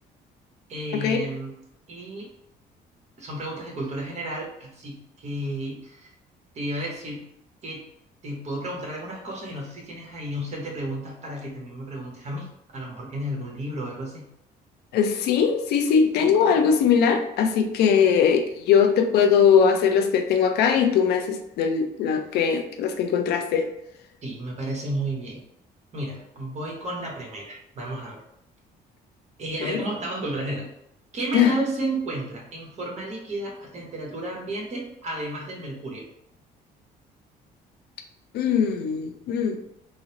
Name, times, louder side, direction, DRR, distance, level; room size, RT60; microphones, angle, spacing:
voice 1, 0.7-1.5 1.9-2.3 3.2-6.1 6.5-7.2 7.6-7.8 8.2-14.3 24.2-25.4 25.9-28.2 29.4-30.7 31.1-36.0, right 1 dB, 40° right, -1 dB, 1.1 m, -32 dB
voice 2, 14.9-23.7 29.6-29.8 31.3-31.5 38.3-39.6, left 7 dB, 75° left, 5 dB, 0.5 m, -20 dB
3.7 x 2.0 x 2.9 m, 0.78 s
cardioid pair, 110°, 17 cm